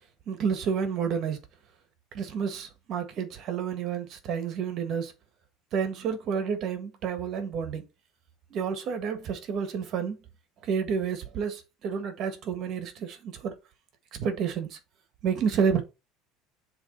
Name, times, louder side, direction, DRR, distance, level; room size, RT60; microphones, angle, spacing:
voice 1, 0.3-1.4 2.1-5.1 5.7-7.8 8.5-10.2 10.6-13.5 14.1-14.8 15.2-15.8, right 6 dB, 40° right, 1.5 m, -30 dB
7.2 x 3.1 x 5.2 m
cardioid pair, 160°, 0 cm